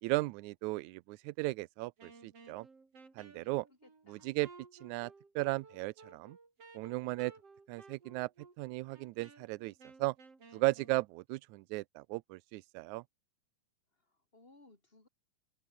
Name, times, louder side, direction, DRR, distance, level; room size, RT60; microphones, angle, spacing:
voice 1, 0.0-2.7 3.2-3.7 4.1-4.5 4.8-6.4 6.7-7.3 7.7-8.3 8.6-9.7 10.0-10.2 10.5-13.0, right 22 dB, 80° right, 1.9 m, -36 dB
Wind instrument woodwind instrument, 2.0-11.0, right 4 dB, 50° right, 5.7 m, -57 dB
voice 2, 3.4-4.3 14.0-15.1, left 2 dB, 15° left, 3.6 m, -63 dB
omnidirectional pair, 3.6 m